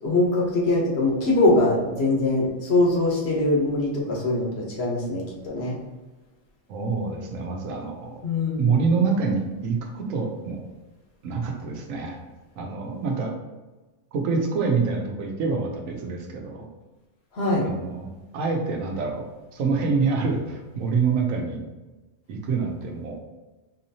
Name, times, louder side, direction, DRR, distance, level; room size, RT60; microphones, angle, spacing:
voice 1, 0.0-5.8 8.2-8.7 17.3-17.7, left 2 dB, 55° left, -2 dB, 1.1 m, -22 dB
voice 2, 6.7-8.2 8.6-10.6 11.2-12.2 12.6-13.3 14.1-16.7 17.6-18.1 18.3-19.3 19.5-21.7 22.3-23.2, right 4 dB, 90° right, 3 dB, 1.1 m, -26 dB
3.9 x 2.9 x 2.7 m, 1.2 s
omnidirectional pair, 1.3 m